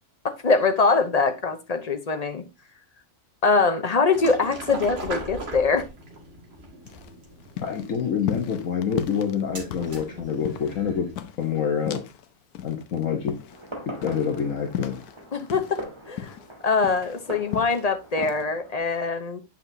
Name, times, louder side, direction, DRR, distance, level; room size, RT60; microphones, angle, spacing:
voice 1, 0.2-2.4 3.4-5.9 15.3-15.8 16.1-16.3 16.6-19.4, left 4 dB, 40° left, 0.6 m, -23 dB
sound 1, 4.1-11.1, right 1 dB, 40° right, 2.3 m, -39 dB
sound 2, 6.8-12.3 12.5-15.9 16.2-17.9 18.2-18.4, left 9 dB, 90° left, 1.2 m, -36 dB
voice 2, 7.6-11.1 11.4-12.0 12.6-13.3 14.0-15.0, left 7 dB, 60° left, 1.3 m, -26 dB
Fireworks, 13.5-18.8, right 1 dB, 20° right, 1.7 m, -41 dB
8.4 x 5.9 x 2.6 m
omnidirectional pair, 1.6 m